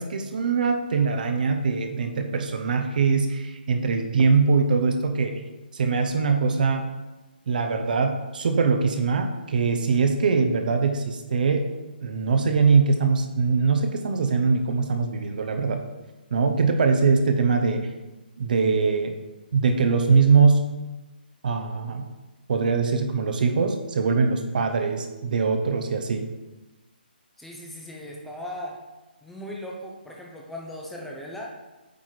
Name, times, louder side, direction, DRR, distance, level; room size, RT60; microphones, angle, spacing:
voice 1, 0.0-5.4 5.7-6.9 7.5-11.7 12.0-15.8 16.3-17.9 18.4-19.2 19.5-20.6 21.4-22.1 22.5-26.3, right 5 dB, 55° right, 6 dB, 0.7 m, -22 dB
voice 2, 27.4-28.8 29.2-31.6, left 1 dB, 5° left, -2 dB, 0.6 m, -38 dB
8.4 x 3.0 x 4.0 m, 1.1 s
hypercardioid pair, 150°, 6 cm